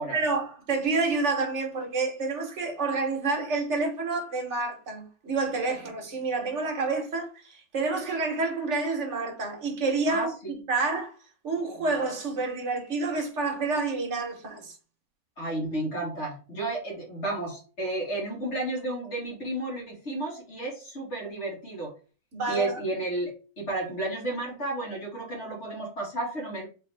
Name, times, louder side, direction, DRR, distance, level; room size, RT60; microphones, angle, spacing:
voice 1, 0.1-11.1 11.4-14.8 22.3-23.0, right 3 dB, 55° right, 1.4 m, -29 dB
voice 2, 15.4-21.9 22.5-23.3 23.6-26.7, right 2 dB, 50° left, 2.2 m, -32 dB
3.7 x 3.4 x 3.3 m
omnidirectional pair, 1.6 m